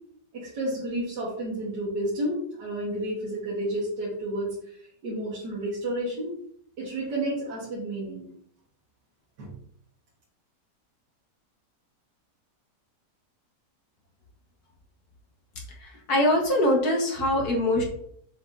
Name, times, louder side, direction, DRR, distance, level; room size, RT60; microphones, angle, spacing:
voice 1, 0.3-6.3 6.8-8.3 9.4-9.5, right 1 dB, 75° right, -7 dB, 2.3 m, -31 dB
voice 2, 15.8-17.8, left 1 dB, 60° left, 0 dB, 2.1 m, -23 dB
7.1 x 5.1 x 2.8 m, 0.66 s
omnidirectional pair, 1.9 m